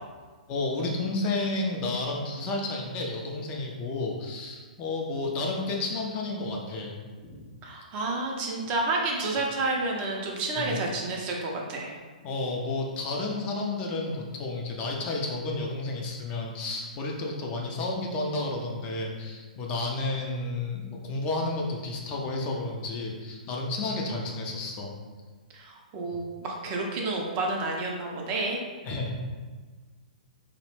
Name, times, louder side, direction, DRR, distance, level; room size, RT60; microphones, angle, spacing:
voice 1, 0.5-7.9 10.6-10.8 12.2-25.0 28.8-29.2, left 2 dB, 30° left, -1 dB, 0.4 m, -31 dB
voice 2, 7.6-11.9 25.5-28.6, right 2 dB, 30° right, -1 dB, 0.4 m, -30 dB
2.6 x 2.0 x 2.9 m, 1.4 s
figure-of-eight pair, 120°, 5 cm